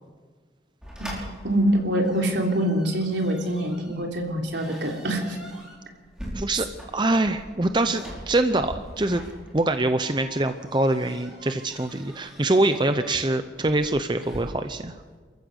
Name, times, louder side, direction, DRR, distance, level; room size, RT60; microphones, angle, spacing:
sound 1, 0.8-14.4, equal, 5° right, 5.0 m, -43 dB
voice 1, 1.4-5.4, right 1 dB, 80° right, 1 dB, 3.4 m, -24 dB
voice 2, 6.3-6.7 6.9-9.2 9.5-14.9, right 2 dB, 25° right, 9 dB, 0.7 m, -24 dB
28.0 x 15.0 x 6.5 m, 1.5 s
head